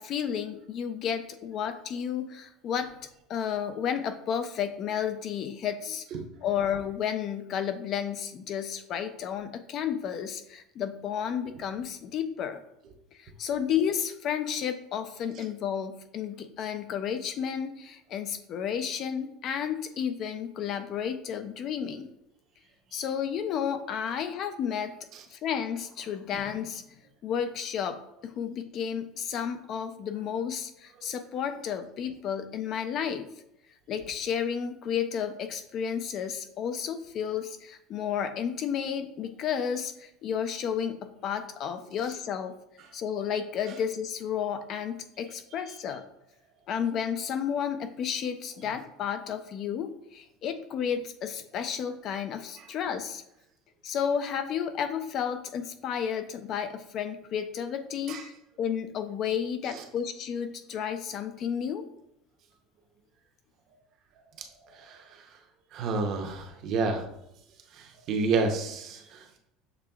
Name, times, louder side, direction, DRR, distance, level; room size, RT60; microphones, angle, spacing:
voice 1, 0.0-2.9 3.3-6.0 6.4-12.6 13.1-22.1 22.9-25.0 25.3-26.8 27.2-33.3 33.9-42.6 42.9-46.0 46.7-53.2 53.8-58.3 58.6-61.8, left 8 dB, 40° left, 10 dB, 0.3 m, -32 dB
voice 2, 65.7-67.0 67.7-69.4, right 4 dB, 45° right, 4 dB, 0.7 m, -30 dB
6.7 x 3.3 x 2.3 m, 0.80 s
cardioid pair, 150°, 0 cm